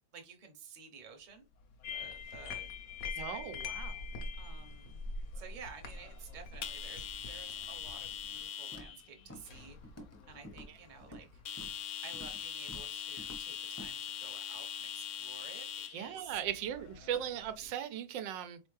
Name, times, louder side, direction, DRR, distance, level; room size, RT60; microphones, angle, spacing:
voice 1, 0.1-1.4 1.9-2.7 3.0-3.4 3.8-4.0 4.4-5.0 5.3-11.4 12.0-16.4, right 6 dB, 35° right, 0.8 m, -53 dB
sound 1, 1.6-17.7, left 9 dB, 75° left, 0.7 m, -45 dB
sound 2, 1.8-8.4, left 4 dB, 60° left, 1.1 m, -43 dB
voice 2, 3.2-4.0 15.9-18.6, right 10 dB, 90° right, 1.3 m, -38 dB
Walk footsteps, 8.7-9.0 9.3-9.6 9.8-10.2 10.4-11.3 11.6-11.8 12.1-12.4 12.7-12.9 13.2-13.4 13.8-13.9, equal, 15° left, 0.7 m, -49 dB
4.2 x 3.4 x 3.2 m
omnidirectional pair, 1.9 m